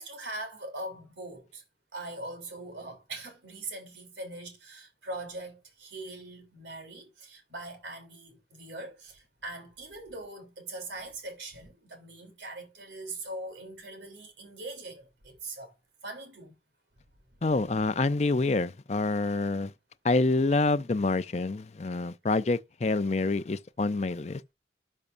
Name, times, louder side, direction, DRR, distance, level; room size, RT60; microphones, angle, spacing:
voice 1, 0.0-1.6 1.9-15.7 16.0-16.5, right 2 dB, 90° right, 3.3 m, -41 dB
voice 2, 17.4-19.7 20.0-24.4, left 3 dB, 40° left, 0.5 m, -27 dB
12.0 x 5.4 x 2.6 m
head